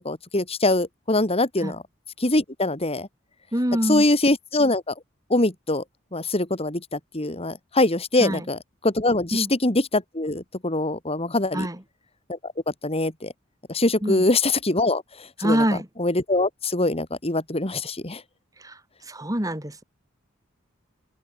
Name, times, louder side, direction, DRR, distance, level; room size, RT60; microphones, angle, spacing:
voice 1, 0.0-1.8 2.2-3.1 3.9-4.9 5.3-5.8 6.1-11.7 12.3-12.4 12.8-13.3 13.7-15.0 15.4-15.6 16.0-18.2, left 2 dB, 30° left, 2.6 m, -23 dB
voice 2, 3.5-4.1 8.2-8.5 9.3-9.5 11.5-11.8 14.0-14.2 15.4-15.9 18.6-18.8 19.1-19.8, equal, 15° right, 3.7 m, -25 dB
head